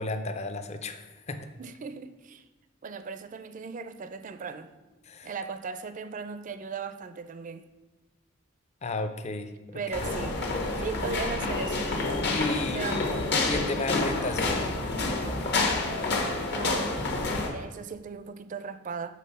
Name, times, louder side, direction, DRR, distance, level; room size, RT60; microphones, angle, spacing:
voice 1, 0.0-1.5 5.1-5.3 8.8-9.8 12.3-12.8 13.5-14.7, left 2 dB, 35° left, 0.5 m, -33 dB
voice 2, 1.6-2.4 2.8-4.7 5.2-7.6 9.7-10.4 10.8-11.9 12.7-13.1 16.5-17.1 17.5-19.2, right 5 dB, 40° right, 0.4 m, -37 dB
sound 1, 9.9-17.5, left 3 dB, 60° left, 1.2 m, -28 dB
7.5 x 3.5 x 5.5 m
head